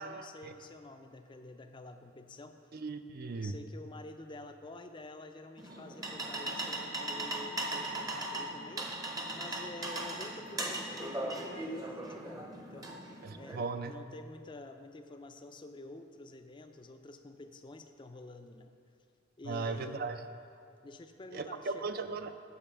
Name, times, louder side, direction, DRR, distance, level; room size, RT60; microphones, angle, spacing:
voice 1, 0.0-2.6 3.4-8.9 9.3-18.7 19.4-20.1 20.8-21.9, left 2 dB, 25° left, 7 dB, 0.4 m, -49 dB
voice 2, 2.7-3.6 13.2-13.9 19.5-20.2 21.3-22.3, right 4 dB, 45° right, 9 dB, 0.4 m, -37 dB
sound 1, 5.6-13.6, right 1 dB, 20° right, 0.7 m, -38 dB
8.6 x 6.0 x 7.1 m, 2.4 s
head